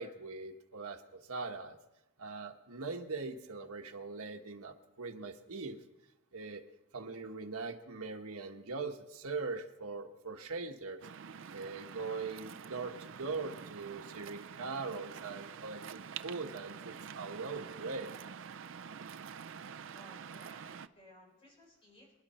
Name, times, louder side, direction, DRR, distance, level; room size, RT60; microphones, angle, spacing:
voice 1, 0.0-1.8 2.2-5.8 6.3-6.6 6.9-11.1 11.5-18.1, right 4 dB, 85° right, 4 dB, 1.3 m, -41 dB
Waves surf, 11.0-20.9, right 7 dB, 60° right, 0.5 m, -47 dB
voice 2, 19.9-22.1, equal, 25° left, -1 dB, 4.7 m, -59 dB
26.0 x 11.5 x 4.3 m, 0.99 s
head